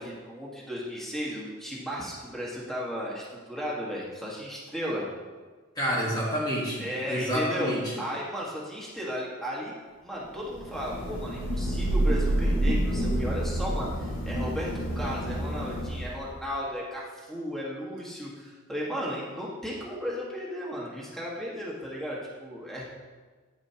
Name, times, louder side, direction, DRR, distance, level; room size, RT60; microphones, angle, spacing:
voice 1, 0.0-5.1 6.8-9.7 10.0-22.8, equal, ahead, -6 dB, 1.6 m, -35 dB
voice 2, 5.7-8.0, equal, 20° left, -5 dB, 1.4 m, -29 dB
Thunder / Rain, 10.5-16.3, right 1 dB, 80° left, 2.0 m, -28 dB
9.9 x 9.1 x 2.9 m, 1.4 s
head